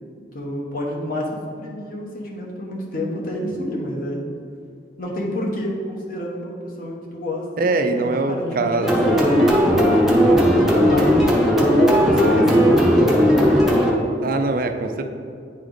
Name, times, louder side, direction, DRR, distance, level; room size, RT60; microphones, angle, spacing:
voice 1, 0.3-1.3 1.6-4.2 5.0-10.0 10.7-13.3, left 1 dB, 50° left, -2 dB, 1.1 m, -29 dB
voice 2, 7.6-9.3 10.2-10.5 14.2-15.1, right 3 dB, 50° right, 6 dB, 0.5 m, -23 dB
sound 1, 8.8-13.9, equal, ahead, 0.7 m, -16 dB
9.7 x 3.3 x 3.9 m, 2.4 s
head